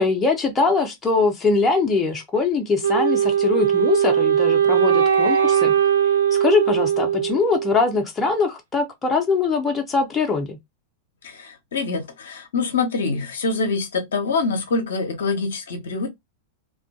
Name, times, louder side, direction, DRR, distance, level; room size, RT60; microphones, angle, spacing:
voice 1, 0.0-5.7 6.3-10.6, left 4 dB, 20° left, 0.6 m, -22 dB
Wind instrument woodwind instrument, 2.8-7.9, right 9 dB, 70° right, 0.3 m, -19 dB
voice 2, 11.2-16.1, left 4 dB, 65° left, 0.7 m, -25 dB
2.5 x 2.3 x 2.5 m
figure-of-eight pair, 90°, 0 cm